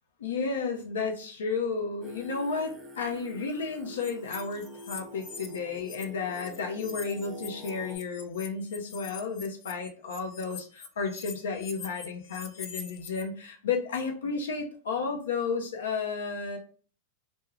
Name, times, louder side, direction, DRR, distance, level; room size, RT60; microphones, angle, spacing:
voice 1, 0.2-16.6, left 5 dB, 80° left, 3 dB, 0.7 m, -32 dB
Singing, 2.0-8.0, equal, 15° right, 0.5 m, -46 dB
sound 1, 4.0-6.0 6.3-13.2, left 6 dB, 45° left, 0.4 m, -44 dB
2.3 x 2.1 x 3.1 m, 0.40 s
hypercardioid pair, 110°, 0 cm